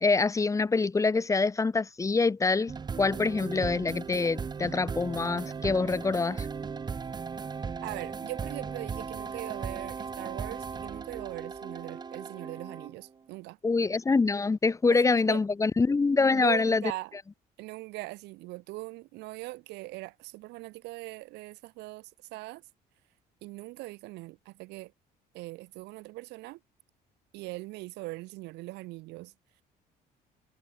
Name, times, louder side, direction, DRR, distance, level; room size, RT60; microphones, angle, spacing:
voice 1, 0.0-6.5 13.6-16.8, left 4 dB, 20° left, 0.7 m, -25 dB
sound 1, 2.7-13.1, right 5 dB, 25° right, 0.7 m, -37 dB
voice 2, 7.8-13.6 14.9-15.4 16.3-17.1 17.6-22.6 23.4-24.9 25.3-26.6 27.3-29.3, right 21 dB, 85° right, 0.8 m, -40 dB
cardioid pair, 110°, 17 cm